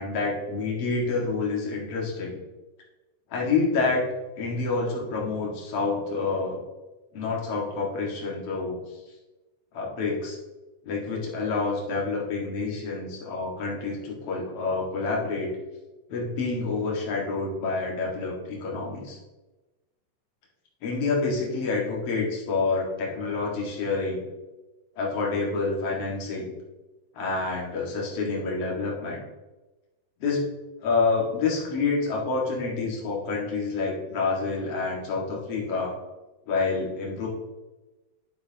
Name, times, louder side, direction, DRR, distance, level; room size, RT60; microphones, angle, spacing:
voice 1, 0.0-2.4 3.3-4.0 4.4-6.6 7.1-8.8 9.7-10.4 10.8-15.5 16.1-19.2 20.8-24.3 25.0-26.5 27.1-29.2 30.2-30.5 30.8-35.9 36.5-37.3, left 4 dB, 50° left, -3 dB, 2.7 m, -28 dB
10.0 x 7.8 x 2.9 m, 1.1 s
omnidirectional pair, 3.8 m